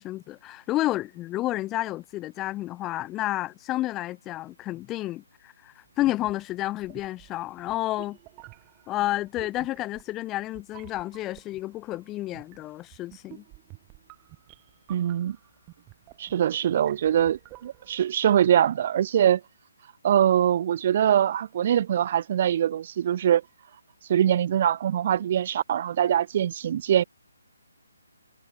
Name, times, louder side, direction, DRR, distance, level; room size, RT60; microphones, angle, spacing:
voice 1, 0.0-8.2 8.9-13.4, left 16 dB, 15° left, 3.6 m, -30 dB
sound 1, 5.9-18.1, right 27 dB, 20° right, 5.7 m, -51 dB
voice 2, 14.9-15.4 16.2-19.4 20.0-23.4 24.1-27.0, right 10 dB, 40° right, 1.8 m, -23 dB
figure-of-eight pair, 145°, 0 cm